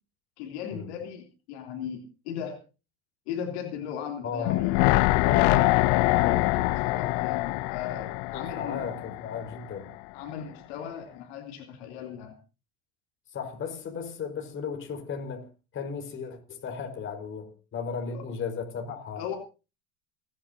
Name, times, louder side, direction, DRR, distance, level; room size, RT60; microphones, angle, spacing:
voice 1, 0.4-2.6 3.3-4.8 5.4-5.7 6.8-8.9 10.1-12.3 18.1-18.3 19.2-19.4, left 8 dB, 80° left, 3.1 m, -37 dB
voice 2, 4.2-4.8 5.2-6.8 8.3-9.9 13.3-15.5 15.7-19.2, left 6 dB, 40° left, 4.7 m, -35 dB
sound 1, 4.4-9.6 9.9-10.0, left 20 dB, 65° left, 0.6 m, -24 dB
29.5 x 10.5 x 2.8 m
supercardioid pair, 110°, 32 cm